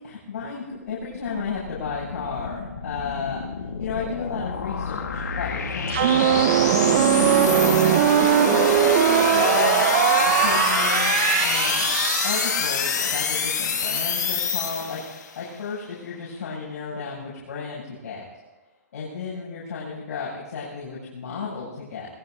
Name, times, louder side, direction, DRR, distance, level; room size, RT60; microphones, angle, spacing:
voice 1, 0.0-3.4 3.8-6.4 7.1-7.8 8.4-11.9 12.2-15.0 15.3-18.2 18.9-22.1, left 5 dB, 65° left, -8 dB, 7.8 m, -33 dB
sound 1, 0.8-15.3, left 6 dB, 90° left, 1.8 m, -26 dB
sound 2, 5.9-12.6, right 12 dB, 45° right, 0.8 m, -20 dB
23.5 x 22.0 x 2.8 m, 1.1 s
hypercardioid pair, 140°, 9 cm